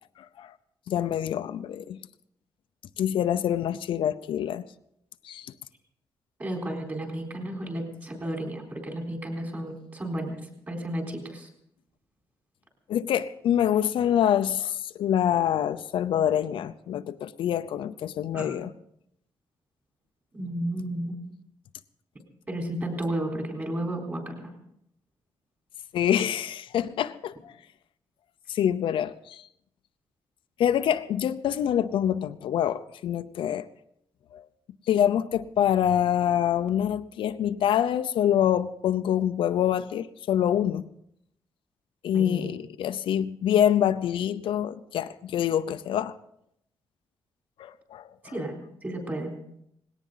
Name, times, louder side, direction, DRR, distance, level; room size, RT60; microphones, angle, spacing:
voice 1, 0.2-0.5 0.9-2.0 3.0-4.6 5.2-5.5 12.9-18.7 25.9-27.5 28.5-29.5 30.6-33.7 34.3-34.4 34.9-40.9 42.0-46.1 47.6-48.3, left 10 dB, 75° left, 0.6 m, -26 dB
voice 2, 6.4-11.5 18.3-18.6 20.3-21.2 22.5-24.5 42.1-42.6 48.3-48.5 48.8-49.3, right 1 dB, 25° right, 4.0 m, -33 dB
19.5 x 17.5 x 3.9 m
wide cardioid pair, 175°, 9 cm